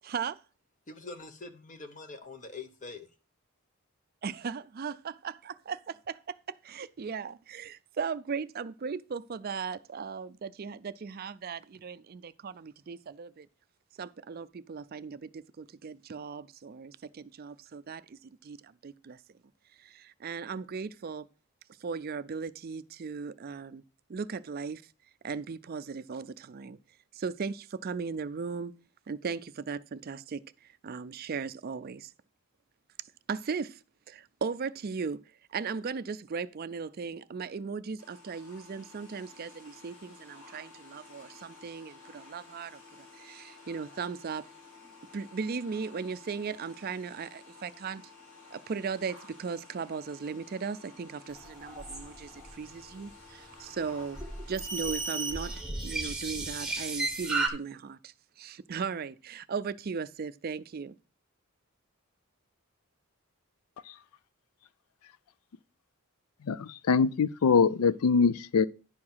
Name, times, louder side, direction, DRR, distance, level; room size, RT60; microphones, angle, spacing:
voice 1, 0.0-0.4 4.2-13.5 14.0-19.2 19.8-21.3 21.8-23.8 24.1-24.8 25.2-26.8 27.1-28.7 29.1-32.1 33.3-35.2 35.5-44.5 45.1-48.0 48.5-54.2 54.5-55.5 55.8-61.0, right 5 dB, 40° right, 0.4 m, -37 dB
voice 2, 0.9-3.1, left 3 dB, 35° left, 1.0 m, -44 dB
sound 1, 38.0-55.6, left 4 dB, 60° left, 2.8 m, -53 dB
sound 2, 51.3-52.5 54.2-57.5, right 3 dB, 5° right, 1.1 m, -34 dB
voice 3, 66.5-68.6, left 5 dB, 80° left, 0.4 m, -23 dB
10.5 x 4.8 x 5.5 m
head